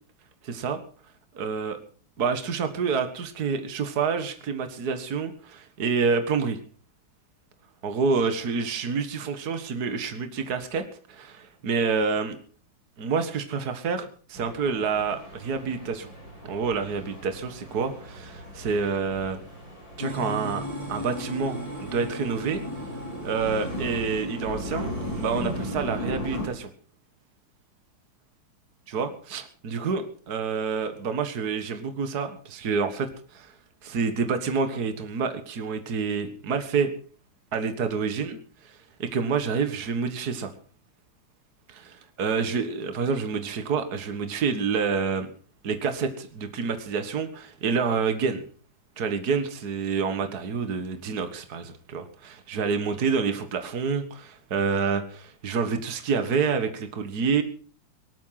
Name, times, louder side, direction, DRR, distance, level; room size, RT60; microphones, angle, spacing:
voice 1, 0.5-0.8 1.4-1.8 2.2-6.6 7.8-10.8 11.1-12.4 13.0-16.1 16.4-19.4 20.0-20.6 20.9-22.6 23.2-26.7 28.9-33.1 33.3-33.5 33.8-36.9 37.5-38.4 39.0-40.5 42.2-45.3 45.6-48.4 49.0-57.4, right 5 dB, 55° right, 8 dB, 2.1 m, -28 dB
sound 1, 14.3-26.5, equal, 75° right, 7.8 m, -38 dB
sound 2, 20.0-26.5, left 1 dB, 15° left, 5.3 m, -37 dB
18.5 x 13.0 x 5.8 m, 0.42 s
omnidirectional pair, 2.1 m